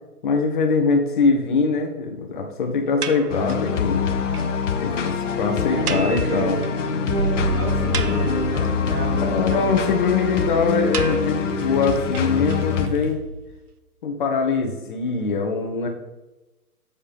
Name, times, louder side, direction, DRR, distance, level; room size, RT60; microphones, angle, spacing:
voice 1, 0.2-4.1 4.8-6.6 9.2-13.2 14.0-15.9, left 4 dB, 35° left, 3 dB, 1.2 m, -22 dB
sound 1, 3.0-3.7 4.1-4.2 4.3-4.5 4.7-4.8 5.0-5.1 5.9-6.9 7.2-7.3 7.7-8.7 10.9-12.9, right 6 dB, 80° right, 0.7 m, -33 dB
sound 2, 3.3-12.9, left 6 dB, 55° left, 0.9 m, -24 dB
voice 2, 5.7-6.7 7.0-10.0, right 3 dB, 40° right, 1 dB, 1.8 m, -30 dB
sound 3, 7.1-13.5, right 2 dB, 25° right, 1.2 m, -31 dB
7.1 x 7.1 x 3.6 m, 1.0 s
figure-of-eight pair, 130°, 45 cm